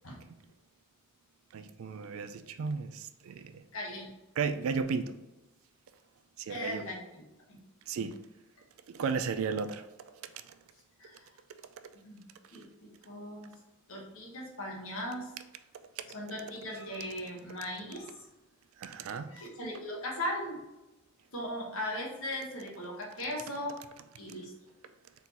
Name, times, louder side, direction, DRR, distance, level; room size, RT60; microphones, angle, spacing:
voice 1, 1.5-3.6 4.4-5.2 6.4-6.8 7.9-8.2 8.9-10.1 10.5-10.6 18.8-19.3, right 5 dB, 85° right, 0.4 m, -34 dB
voice 2, 3.7-4.1 6.5-7.0 7.5-7.6 11.0-11.3 12.0-12.2 12.5-13.5 13.9-15.4 16.1-18.3 19.3-20.6 21.3-23.9 24.2-24.5, left 1 dB, 80° left, 1.2 m, -38 dB
4.0 x 3.7 x 2.9 m
head